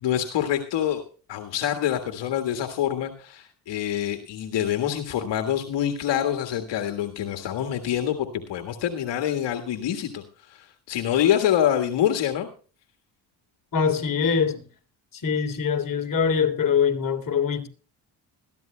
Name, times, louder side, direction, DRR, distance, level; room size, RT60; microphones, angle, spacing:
voice 1, 0.0-1.0 1.3-12.5, left 10 dB, 75° left, 1.7 m, -26 dB
voice 2, 13.7-14.6 15.1-17.7, left 6 dB, 50° left, 3.2 m, -23 dB
20.5 x 14.5 x 2.2 m
cardioid pair, 75°, 43 cm